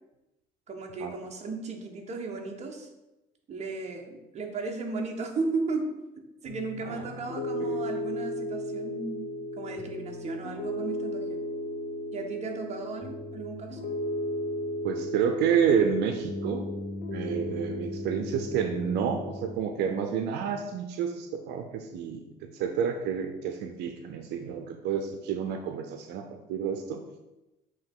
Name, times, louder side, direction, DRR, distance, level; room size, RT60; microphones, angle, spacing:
voice 1, 0.7-2.9 3.5-5.9 6.4-9.3 9.6-11.4 12.1-13.9, right 3 dB, 40° right, 2 dB, 1.3 m, -35 dB
Piano, 6.4-19.5, left 1 dB, 60° left, 1.8 m, -35 dB
voice 2, 14.8-16.7 17.1-27.0, right 7 dB, 85° right, 6 dB, 0.7 m, -29 dB
7.9 x 3.1 x 5.4 m, 0.98 s
cardioid pair, 110°, 17 cm